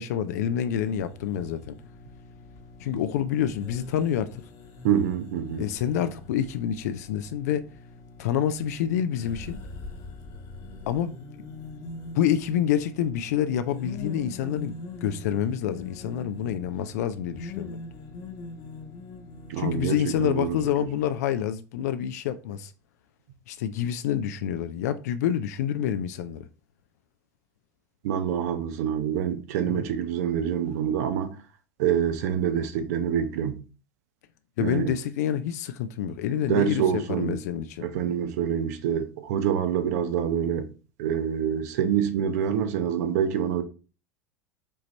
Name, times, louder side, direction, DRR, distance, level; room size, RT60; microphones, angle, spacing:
voice 1, 0.0-1.7 2.8-4.3 5.6-7.6 8.2-9.6 10.9-11.1 12.1-14.7 15.0-17.8 19.6-22.7 23.5-26.5 29.6-29.8 34.6-37.9, left 9 dB, 70° left, 0.4 m, -27 dB
sound 1, 0.8-20.6, left 3 dB, 55° left, 1.2 m, -43 dB
voice 2, 4.8-5.7 19.5-20.9 28.0-31.4 31.8-33.6 34.6-34.9 36.5-37.4 37.8-40.7 41.0-43.6, right 8 dB, 70° right, 0.7 m, -26 dB
5.2 x 2.9 x 3.2 m
hypercardioid pair, 80°, 9 cm